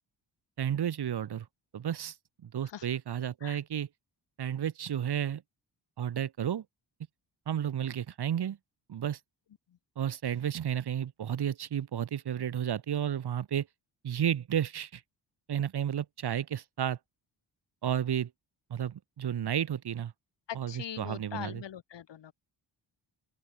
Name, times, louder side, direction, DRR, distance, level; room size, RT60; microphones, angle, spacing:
voice 1, 0.6-1.5 1.7-2.1 2.4-3.9 4.4-5.4 6.0-6.6 7.5-8.6 8.9-9.2 10.0-13.7 14.0-15.0 15.5-17.0 17.8-18.3 18.7-20.1 20.5-21.6, right 9 dB, 60° right, 1.3 m, -32 dB
voice 2, 20.5-22.3, left 10 dB, 70° left, 2.0 m, -41 dB
open air
cardioid pair, 75°, 44 cm